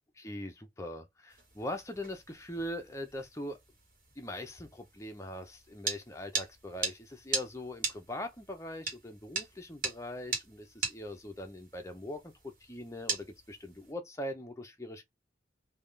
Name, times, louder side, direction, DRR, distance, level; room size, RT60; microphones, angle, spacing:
voice 1, 0.2-3.6 4.2-12.3 12.6-15.1, left 1 dB, 15° left, 0.7 m, -41 dB
sound 1, 1.3-13.9, right 4 dB, 50° right, 1.3 m, -40 dB
3.5 x 2.4 x 3.3 m
head